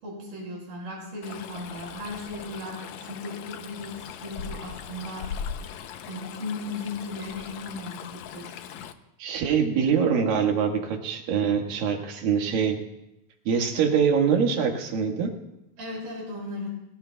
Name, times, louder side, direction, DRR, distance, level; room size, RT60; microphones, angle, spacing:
voice 1, 0.0-5.3 6.0-8.6 15.8-16.7, left 2 dB, 90° right, -4 dB, 8.0 m, -36 dB
Stream, 1.2-8.9, left 8 dB, 90° left, 1.6 m, -39 dB
voice 2, 9.2-12.8 13.5-15.3, right 6 dB, 75° right, 3 dB, 3.3 m, -24 dB
29.0 x 18.0 x 2.3 m, 0.88 s
omnidirectional pair, 4.2 m